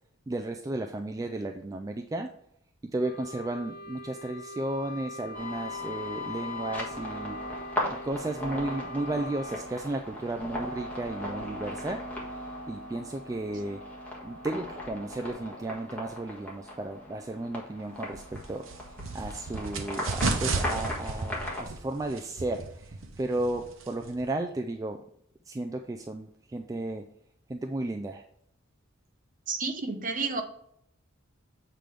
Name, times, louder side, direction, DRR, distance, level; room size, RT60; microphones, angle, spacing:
voice 1, 0.3-2.3 2.8-7.4 7.9-12.1 12.7-13.8 14.2-18.7 19.1-25.0 25.5-27.1 27.5-28.3, right 2 dB, 15° right, 5 dB, 0.3 m, -34 dB
Wind instrument woodwind instrument, 3.0-9.7, left 1 dB, 45° left, 0.7 m, -43 dB
sound 1, 5.3-21.7, left 1 dB, 5° left, 1.5 m, -38 dB
sound 2, 18.1-24.3, right 3 dB, 70° right, 0.9 m, -34 dB
voice 2, 29.5-30.4, right 4 dB, 40° right, 6 dB, 0.8 m, -30 dB
7.6 x 3.3 x 5.1 m, 0.69 s
head